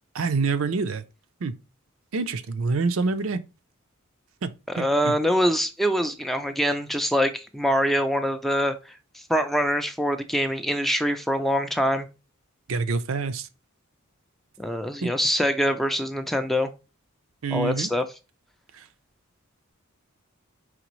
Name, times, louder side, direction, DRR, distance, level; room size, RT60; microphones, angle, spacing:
voice 1, 0.1-1.0 1.4-1.5 2.1-3.4 4.4-5.1 12.7-13.5 15.0-15.1 17.4-17.9 18.7-18.9, right 4 dB, 65° right, 0.5 m, -27 dB
voice 2, 4.7-12.1 14.6-16.7 17.5-18.0, equal, ahead, 0.3 m, -24 dB
5.0 x 3.3 x 3.0 m
head